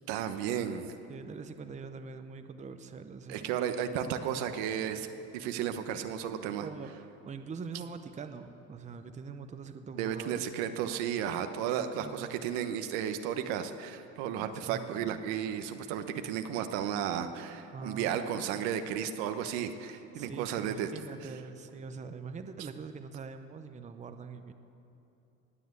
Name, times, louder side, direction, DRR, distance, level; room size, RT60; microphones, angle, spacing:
voice 1, 0.1-0.9 3.3-5.1 5.3-6.7 9.9-20.9, right 9 dB, 80° right, 8 dB, 1.1 m, -33 dB
voice 2, 1.1-3.6 6.6-6.9 7.2-10.5 12.0-12.3 14.4-15.1 17.7-18.2 20.1-24.5, right 5 dB, 20° right, 8 dB, 0.7 m, -43 dB
19.5 x 7.5 x 8.2 m, 3.0 s
supercardioid pair, 110°, 34 cm